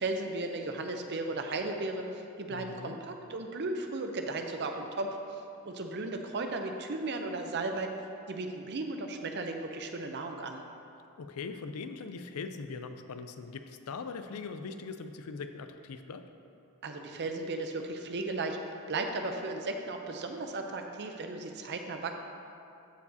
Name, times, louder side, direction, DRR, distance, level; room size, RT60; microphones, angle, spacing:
voice 1, 0.0-5.2 5.6-7.9 8.3-10.6 16.8-22.1, right 2 dB, 50° right, 5 dB, 0.6 m, -35 dB
voice 2, 2.5-3.0 11.2-16.2, left 4 dB, 75° left, 8 dB, 0.4 m, -41 dB
13.5 x 4.7 x 2.7 m, 2.7 s
head